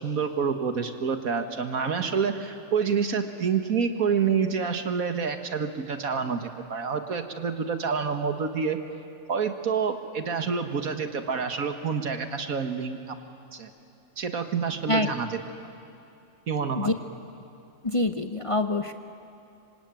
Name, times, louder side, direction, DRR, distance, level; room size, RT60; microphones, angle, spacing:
voice 1, 0.0-8.8 9.3-13.1 13.5-13.7 14.2-15.4 16.5-16.9, right 6 dB, 85° right, 7 dB, 2.1 m, -28 dB
voice 2, 17.8-18.9, left 2 dB, 30° left, 7 dB, 0.7 m, -25 dB
26.0 x 25.0 x 9.1 m, 2.8 s
omnidirectional pair, 1.4 m